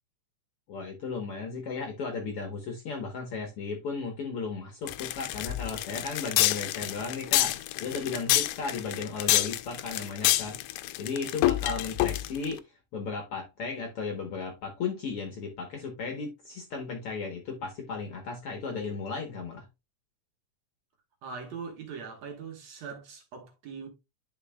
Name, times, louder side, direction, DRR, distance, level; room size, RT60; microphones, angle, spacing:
voice 1, 0.7-12.6 12.9-19.7, left 4 dB, 60° left, 1.6 m, -35 dB
sound 1, 4.9-12.5, left 16 dB, 85° left, 2.1 m, -27 dB
voice 2, 21.2-23.9, right 5 dB, 60° right, 2.5 m, -41 dB
10.5 x 5.0 x 2.2 m
omnidirectional pair, 3.7 m